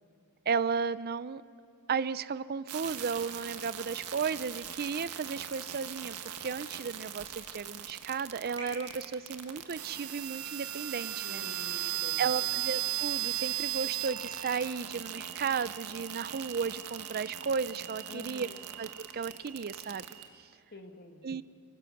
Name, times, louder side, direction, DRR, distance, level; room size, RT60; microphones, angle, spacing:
voice 1, 0.5-1.4 1.9-11.4 12.2-18.5 18.8-20.0 21.2-21.4, right 5 dB, 45° right, 16 dB, 0.5 m, -34 dB
sound 1, 2.7-20.3, right 12 dB, 85° right, 1.5 m, -38 dB
sound 2, 4.2-13.0 13.2-14.0 14.3-15.0 15.3-15.5, right 2 dB, 20° right, 5.9 m, -53 dB
voice 2, 11.2-12.6 18.1-18.7 20.7-21.4, left 2 dB, 45° left, 5 dB, 1.8 m, -49 dB
26.0 x 23.5 x 6.5 m, 2.5 s
head